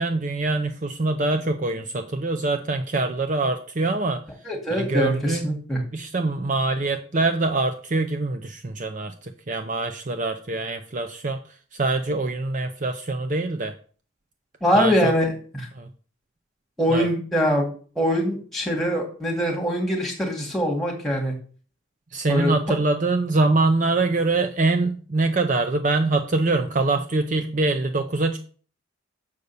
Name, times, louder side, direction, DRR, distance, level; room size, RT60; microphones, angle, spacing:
voice 1, 0.0-4.2 4.7-5.5 5.9-11.4 11.7-13.7 14.7-15.1 15.7-15.9 16.9-17.1 22.1-28.4, right 3 dB, 40° right, 6 dB, 0.6 m, -24 dB
voice 2, 4.5-5.8 14.6-15.7 16.8-17.7 18.0-21.3 22.3-22.5, equal, ahead, -1 dB, 2.2 m, -23 dB
6.6 x 5.3 x 6.9 m, 0.42 s
head